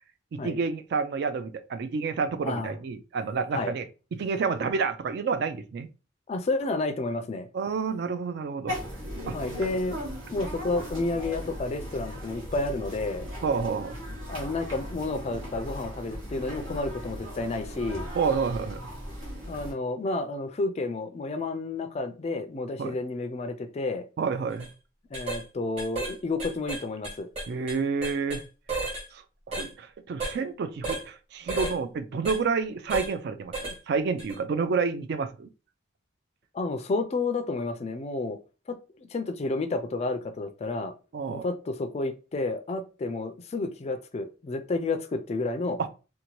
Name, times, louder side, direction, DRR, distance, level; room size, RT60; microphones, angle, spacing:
voice 1, 0.3-5.9 7.5-8.8 9.3-9.4 13.4-14.0 18.1-18.8 22.8-23.0 24.2-24.7 27.5-28.5 29.1-35.5 41.1-41.5 45.8-45.9, right 5 dB, 55° right, 0.3 m, -29 dB
voice 2, 2.4-2.7 3.5-3.7 6.3-7.5 9.3-13.3 14.3-18.1 19.5-24.1 25.1-27.3 36.5-38.4 38.7-40.9 41.3-45.8, left 3 dB, 35° left, 0.3 m, -31 dB
sound 1, 8.7-19.7, equal, 75° right, 1.3 m, -38 dB
sound 2, 24.5-24.7 25.1-25.4 25.8-26.1 26.4-28.4 28.7-29.0 29.5-29.7 30.2-30.4 30.8-31.0 31.5-31.8 32.2-32.4 32.9-33.1 33.5-33.8 34.2-34.3, right 3 dB, 30° right, 1.4 m, -32 dB
2.8 x 2.2 x 2.9 m
head